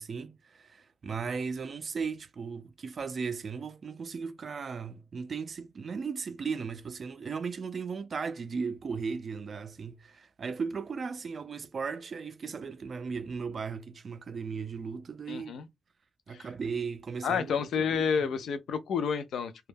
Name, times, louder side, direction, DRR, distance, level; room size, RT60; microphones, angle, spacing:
voice 1, 0.0-15.6 16.3-17.9 18.2-18.3, right 5 dB, 50° right, 0.3 m, -36 dB
voice 2, 15.3-15.7 16.3-16.5 17.2-19.7, left 6 dB, 80° left, 0.5 m, -30 dB
2.2 x 2.1 x 3.2 m
cardioid pair, 85°, 0 cm